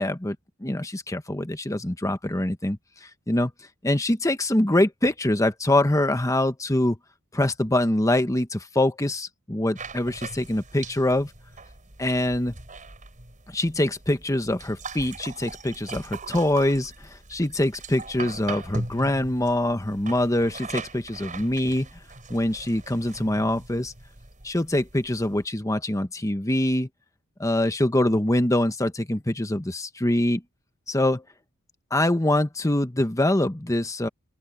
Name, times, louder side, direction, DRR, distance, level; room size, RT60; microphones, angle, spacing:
voice 1, 0.0-3.5 3.8-7.0 7.3-11.3 12.0-12.5 13.5-21.9 22.3-23.9 24.4-26.9 27.4-30.4 30.9-31.2 31.9-34.1, left 1 dB, 15° left, 1.2 m, -24 dB
sound 1, 9.8-25.4, right 3 dB, 35° right, 5.2 m, -40 dB
open air
head